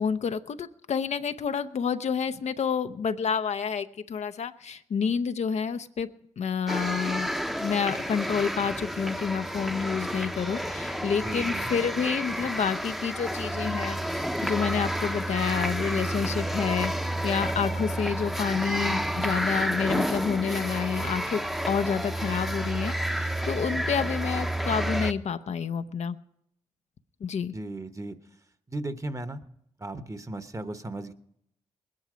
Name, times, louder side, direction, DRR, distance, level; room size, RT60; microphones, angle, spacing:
voice 1, 0.0-6.1 6.4-7.3 7.6-21.4 21.7-26.2 27.2-27.5, left 6 dB, 65° left, 9 dB, 0.7 m, -29 dB
sound 1, 6.7-25.1, right 1 dB, ahead, 0.9 m, -30 dB
voice 2, 11.2-11.7 27.5-28.2 28.7-29.4 29.8-31.1, right 2 dB, 25° right, 10 dB, 1.2 m, -36 dB
20.5 x 10.5 x 5.1 m, 0.76 s
supercardioid pair, 50°, 12 cm